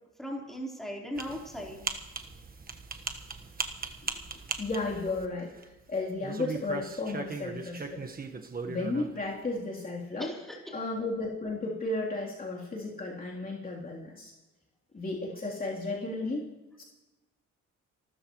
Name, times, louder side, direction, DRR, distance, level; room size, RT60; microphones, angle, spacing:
voice 1, 0.2-1.8 10.2-10.8, equal, ahead, -2 dB, 4.0 m, -38 dB
sound 1, 1.2-5.8 6.1-9.2, right 4 dB, 30° right, 1.4 m, -38 dB
voice 2, 4.6-5.5 5.9-8.0 8.7-10.3 10.7-14.3 14.9-16.5 16.8-16.9, left 2 dB, 30° left, -4 dB, 3.4 m, -34 dB
28.0 x 13.5 x 3.1 m, 1.1 s
cardioid pair, 90°, 30 cm